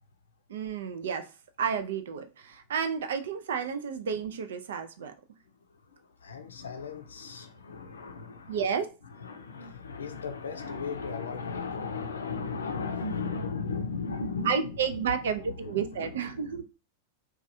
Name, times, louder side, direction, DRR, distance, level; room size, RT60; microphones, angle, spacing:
voice 1, 0.5-1.3 1.6-5.1 8.5-8.9 14.5-16.6, right 6 dB, 60° right, 0.4 m, -31 dB
voice 2, 5.4-8.7 9.0-16.6, left 4 dB, 70° left, 0.5 m, -36 dB
3.1 x 2.3 x 2.7 m
figure-of-eight pair, 90°, 0 cm